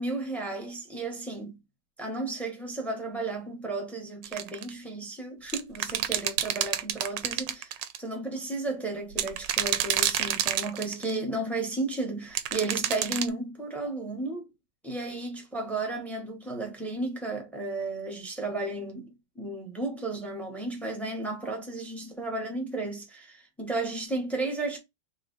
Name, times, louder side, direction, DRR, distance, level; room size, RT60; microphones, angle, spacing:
voice 1, 0.0-1.6 2.0-14.5 14.8-19.1 19.3-24.8, right 2 dB, ahead, 0.3 m, -33 dB
sound 1, 4.2-4.7 5.5-8.0 9.1-11.2 12.4-13.3, right 11 dB, 75° right, 1.0 m, -28 dB
4.1 x 3.1 x 4.0 m
omnidirectional pair, 2.4 m